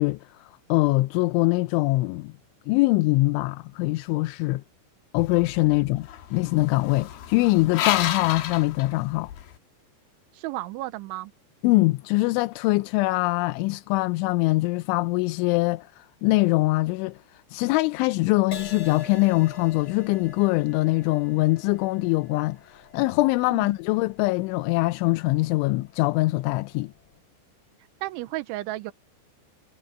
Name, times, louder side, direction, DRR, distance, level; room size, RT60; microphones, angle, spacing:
voice 1, 0.0-2.3 2.7-4.6 5.1-9.3 11.6-26.9, left 21 dB, 85° left, 3.1 m, -23 dB
sound 1, 5.2-9.5, left 10 dB, 65° left, 2.6 m, -32 dB
voice 2, 10.3-11.3 23.5-23.7 28.0-28.9, right 18 dB, 85° right, 3.3 m, -33 dB
Crash cymbal, 18.5-26.2 26.8-27.1, left 5 dB, 45° left, 4.3 m, -45 dB
omnidirectional pair, 5.4 m